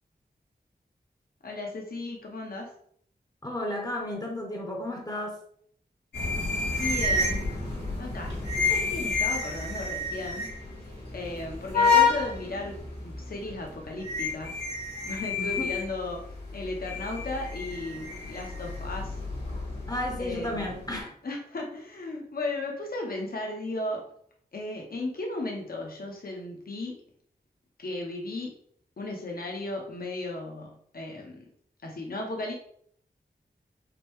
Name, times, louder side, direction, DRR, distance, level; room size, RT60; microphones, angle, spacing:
voice 1, 1.4-2.7 6.7-7.5 8.0-10.5 11.1-14.6 15.0-16.3 16.5-19.2 20.2-20.7 21.2-24.0 24.5-26.9 27.8-28.5 29.0-31.4 31.8-32.5, left 2 dB, 60° left, 0 dB, 0.9 m, -35 dB
voice 2, 3.4-5.4 15.4-15.8 19.9-21.1, left 1 dB, 20° left, 1 dB, 0.8 m, -33 dB
sound 1, 6.1-21.0, left 4 dB, 80° left, 1.6 m, -30 dB
5.1 x 2.2 x 3.1 m, 0.64 s
wide cardioid pair, 75°, 17 cm